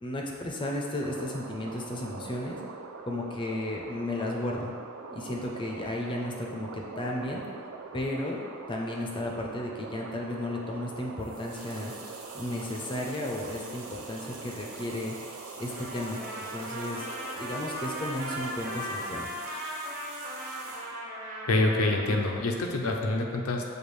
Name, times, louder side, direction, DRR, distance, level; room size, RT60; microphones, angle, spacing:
voice 1, 0.0-2.6 3.1-4.7 5.1-7.4 7.9-11.9 12.3-15.2 15.6-16.2 16.5-17.1 17.3-19.3, left 1 dB, 25° left, -1 dB, 0.5 m, -34 dB
sound 1, 1.0-19.1, right 4 dB, 65° right, 0.4 m, -43 dB
sound 2, 11.2-21.0, right 3 dB, 85° right, 0.8 m, -47 dB
Trumpet, 15.6-22.2, equal, 40° right, 0.9 m, -38 dB
voice 2, 21.4-23.7, left 2 dB, 80° left, 2 dB, 0.6 m, -26 dB
7.0 x 2.4 x 3.2 m, 2.1 s
head